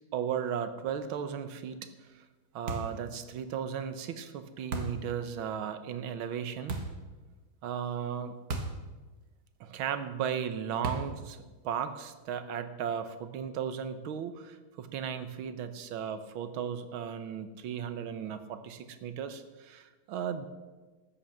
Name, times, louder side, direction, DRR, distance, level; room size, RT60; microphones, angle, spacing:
voice 1, 0.1-2.2 2.5-6.9 7.6-8.3 9.6-11.4 11.6-20.5, right 8 dB, 75° right, 10 dB, 1.8 m, -36 dB
sound 1, 2.7-3.1 4.7-5.1 6.7-7.0 8.5-8.9 9.1-9.2 10.8-11.2, right 2 dB, 50° right, 1.7 m, -35 dB
13.5 x 8.5 x 7.2 m, 1.3 s
omnidirectional pair, 2.2 m